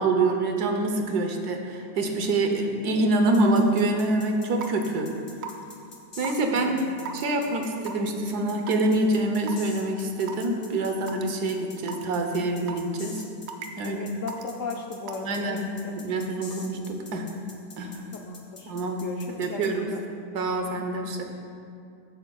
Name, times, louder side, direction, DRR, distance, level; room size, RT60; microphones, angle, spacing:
voice 1, 0.0-5.1 6.2-6.8 7.1-13.2 13.8-14.0 15.2-15.6 15.9-17.3 17.8-18.1 18.7-19.0 19.4-19.9 20.3-21.3, right 2 dB, 75° right, 4 dB, 1.4 m, -26 dB
sound 1, 3.3-19.7, left 3 dB, 35° left, 1.1 m, -46 dB
Raindrop / Water tap faucet / Drip, 4.6-4.8 5.4-5.7 6.2-6.4 7.1-7.2 7.9-8.1 8.7-8.9 9.5-9.6 10.3-10.5 11.1-11.2 11.9-12.0 12.7-13.0 13.5-13.8 14.3-14.5 15.1-15.3, right 6 dB, 60° right, 0.7 m, -36 dB
voice 2, 6.5-7.2 13.8-15.6 18.1-18.7 19.0-20.0, left 3 dB, 65° left, 2 dB, 0.9 m, -36 dB
15.5 x 8.7 x 2.3 m, 2.4 s
omnidirectional pair, 1.7 m